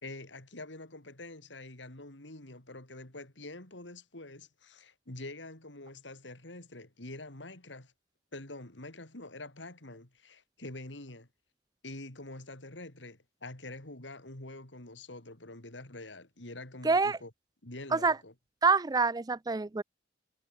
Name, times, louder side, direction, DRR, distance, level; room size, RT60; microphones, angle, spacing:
voice 1, 0.0-7.9 8.3-11.3 11.8-17.3 17.6-18.3, left 2 dB, 85° left, 3.8 m, -46 dB
voice 2, 16.8-17.2 17.9-18.2 18.6-19.8, right 4 dB, 20° right, 0.4 m, -26 dB
head